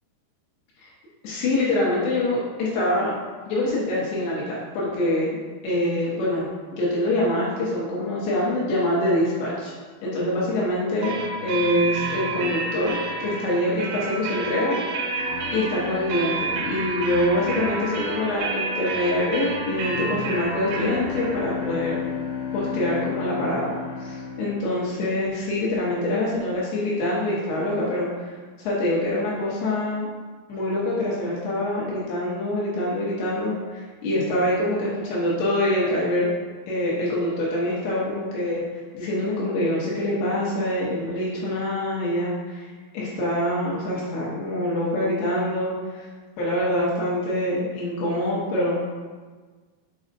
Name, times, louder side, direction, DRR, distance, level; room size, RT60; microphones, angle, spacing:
voice 1, 1.2-3.1 3.5-5.4 5.6-9.7 10.0-11.1 11.4-15.1 15.5-22.0 22.5-23.7 24.0-30.1 30.5-36.3 36.7-38.6 38.9-46.1 46.4-48.8, left 1 dB, 80° left, -6 dB, 3.3 m, -25 dB
sound 1, 11.0-24.6, right 3 dB, 85° right, 3.0 m, -30 dB
Bowed string instrument, 20.6-25.8, left 7 dB, 60° left, 3.2 m, -33 dB
6.9 x 5.2 x 2.6 m, 1.4 s
omnidirectional pair, 5.1 m